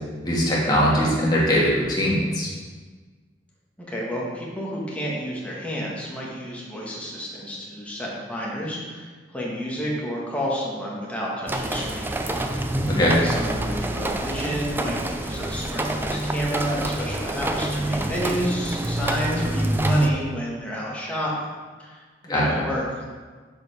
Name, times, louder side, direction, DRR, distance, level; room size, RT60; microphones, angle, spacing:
voice 1, 0.2-2.5 12.9-13.1 22.3-22.6, equal, 25° left, -5 dB, 1.8 m, -21 dB
voice 2, 3.8-12.1 13.2-21.4 21.8-23.2, equal, 5° left, -5 dB, 1.4 m, -30 dB
sound 1, 11.5-20.1, right 1 dB, 10° right, 0.4 m, -26 dB
6.5 x 4.9 x 4.9 m, 1.5 s
head